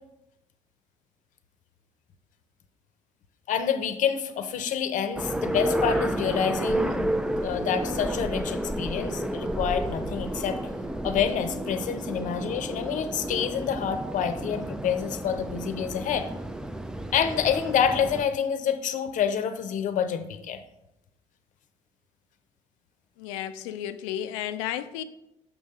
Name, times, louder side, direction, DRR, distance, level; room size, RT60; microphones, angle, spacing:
voice 1, 3.5-7.2 7.4-10.6 11.0-16.3 17.1-20.6, left 8 dB, 55° left, 0.7 m, -27 dB
sound 1, 5.2-18.3, right 1 dB, 5° right, 0.4 m, -31 dB
voice 2, 23.2-25.0, left 11 dB, 85° left, 0.4 m, -33 dB
6.1 x 5.5 x 3.7 m
hypercardioid pair, 70°, 15 cm